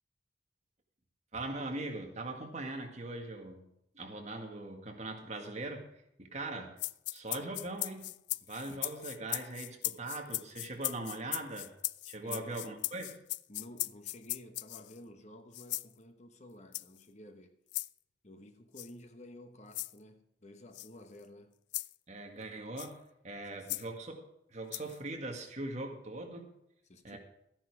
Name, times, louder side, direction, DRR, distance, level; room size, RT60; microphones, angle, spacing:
voice 1, 1.3-3.7 3.9-5.9 6.2-6.8 7.1-8.1 8.4-11.7 12.1-13.2 22.1-26.5 27.0-27.2, right 2 dB, 40° right, 1.9 m, -41 dB
sound 1, 6.8-15.0 15.5-15.9 16.7-17.0 17.7-17.9 18.8-18.9 19.7-19.9 20.7-20.9 21.7-21.9 22.8-22.9 23.7-23.8 24.7-25.0, left 18 dB, 80° left, 0.3 m, -38 dB
voice 2, 12.2-12.6 13.5-17.6 18.2-21.6 23.5-23.7 26.9-27.2, left 1 dB, 40° left, 1.1 m, -52 dB
13.5 x 9.9 x 4.8 m
head